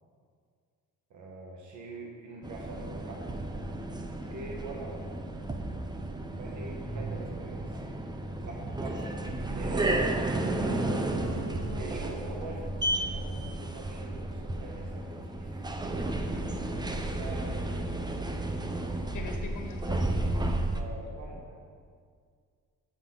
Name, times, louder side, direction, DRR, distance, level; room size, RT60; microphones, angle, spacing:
voice 1, 1.1-3.3 4.3-5.0 6.4-7.8 8.4-11.3 11.7-15.7 16.9-18.1 20.7-21.5, right 2 dB, 70° right, -1 dB, 1.8 m, -43 dB
sound 1, 2.4-20.8, right 1 dB, 15° right, 0.8 m, -33 dB
voice 2, 4.2-4.5 16.3-16.7 19.1-20.0, left 4 dB, 75° left, 3 dB, 1.6 m, -43 dB
sound 2, 10.3-14.5, right 4 dB, 45° right, 1.4 m, -44 dB
14.5 x 7.2 x 4.1 m, 2.1 s
cardioid pair, 110°, 31 cm